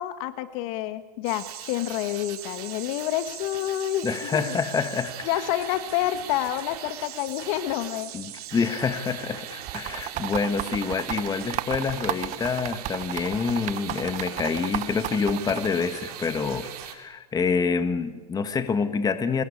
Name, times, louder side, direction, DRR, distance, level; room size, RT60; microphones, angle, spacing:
voice 1, 0.0-4.5 5.2-8.1, left 13 dB, 60° left, 11 dB, 1.5 m, -28 dB
sound 1, 1.2-16.9, right 11 dB, 70° right, 4.0 m, -40 dB
voice 2, 4.0-5.3 8.1-19.4, left 5 dB, 20° left, 10 dB, 1.6 m, -27 dB
sound 2, 9.7-15.7, right 14 dB, 35° right, 0.9 m, -32 dB
24.0 x 21.5 x 8.6 m, 1.3 s
supercardioid pair, 125°, 20 cm